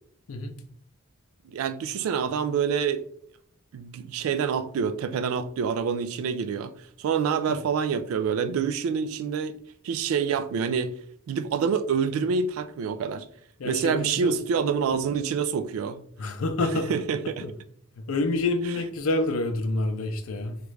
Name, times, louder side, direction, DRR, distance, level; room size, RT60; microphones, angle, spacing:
voice 1, 1.5-3.1 3.7-6.7 7.0-9.6 9.8-11.0 11.3-13.3 13.6-16.0 16.6-17.5, right 6 dB, 80° right, 0.3 m, -27 dB
voice 2, 13.6-14.3 16.2-16.9 17.4-17.5 18.1-20.6, left 2 dB, 75° left, 0.5 m, -27 dB
3.0 x 2.4 x 3.2 m
head